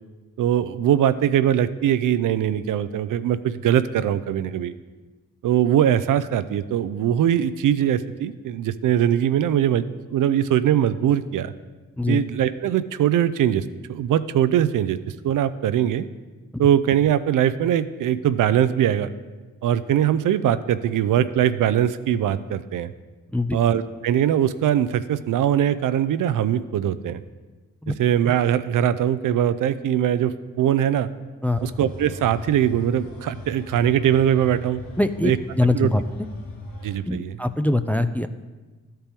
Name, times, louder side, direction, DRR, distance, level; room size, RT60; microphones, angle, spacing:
voice 1, 0.4-4.7 5.4-9.8 10.1-11.5 12.1-15.0 15.2-16.0 16.6-19.1 19.6-22.9 23.5-27.2 28.0-31.1 31.6-34.8 35.2-35.4 35.7-35.9 36.8-37.3, right 10 dB, 65° right, 13 dB, 0.5 m, -21 dB
sound 1, 31.5-37.0, left 1 dB, 85° left, 1.5 m, -38 dB
voice 2, 35.0-36.0 37.0-38.3, left 2 dB, 5° left, 10 dB, 0.4 m, -23 dB
12.5 x 4.4 x 3.5 m, 1.3 s
supercardioid pair, 45°, 35 cm